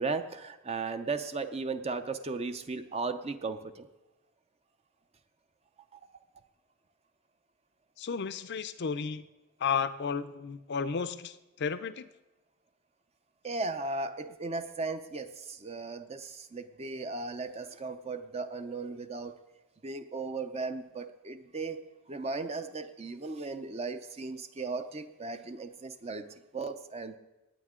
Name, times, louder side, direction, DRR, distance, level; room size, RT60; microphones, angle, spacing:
voice 1, 0.0-3.9 5.9-6.0 13.4-19.4 19.8-21.8 22.1-27.2, right 3 dB, 30° right, 9 dB, 0.6 m, -36 dB
voice 2, 8.0-9.3 9.6-12.1, left 6 dB, 50° left, 12 dB, 0.5 m, -33 dB
18.5 x 8.8 x 3.7 m, 1.0 s
head